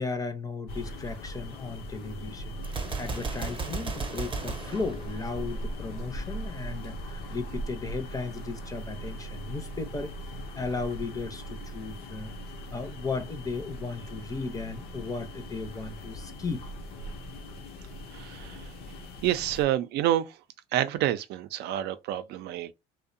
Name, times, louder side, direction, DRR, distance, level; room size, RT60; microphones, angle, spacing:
voice 1, 0.0-2.6 3.0-10.1 10.6-12.3 12.7-16.6, left 4 dB, 20° left, 0.6 m, -35 dB
sound 1, 0.7-19.6, equal, 65° left, 0.6 m, -40 dB
Gunshot gunfire, 2.6-5.7, right 4 dB, 30° right, 0.7 m, -35 dB
voice 2, 18.1-18.7 19.2-20.4 20.7-22.7, right 12 dB, 70° right, 0.4 m, -28 dB
2.6 x 2.1 x 2.5 m
supercardioid pair, 75°, 18 cm